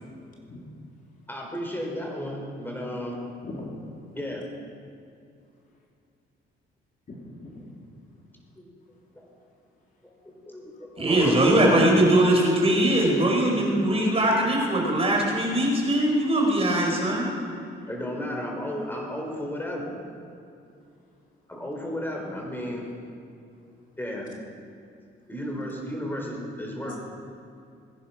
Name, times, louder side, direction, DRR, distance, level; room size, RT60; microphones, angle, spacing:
voice 1, 1.3-3.1 4.1-4.5 8.6-8.7 9.1-9.3 10.0-12.1 16.4-16.5 17.9-20.0 21.5-22.9 24.0-24.3 25.3-27.0, equal, 10° left, 0 dB, 4.7 m, -33 dB
voice 2, 3.4-3.8 7.1-7.8 26.8-27.0, left 2 dB, 45° left, -2 dB, 3.0 m, -40 dB
voice 3, 11.0-17.3, right 1 dB, 30° right, -1 dB, 4.3 m, -21 dB
20.0 x 10.0 x 5.9 m, 2.5 s
cardioid pair, 90°, 20 cm